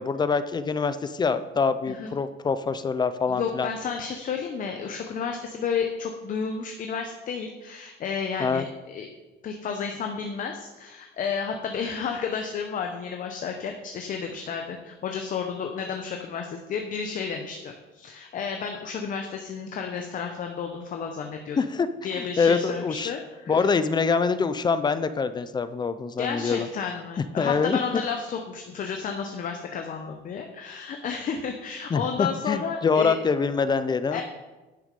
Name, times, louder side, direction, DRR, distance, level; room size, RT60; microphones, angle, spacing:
voice 1, 0.0-3.7 8.4-8.6 21.6-21.9 22.2-23.1 23.5-26.7 27.4-28.0 31.9-34.2, left 5 dB, 20° left, 12 dB, 0.4 m, -25 dB
voice 2, 3.3-9.1 9.4-21.6 22.0-23.7 26.2-33.2 34.1-34.2, left 6 dB, 45° left, 3 dB, 0.8 m, -32 dB
10.5 x 6.2 x 5.3 m, 1.1 s
cardioid pair, 150°, 20 cm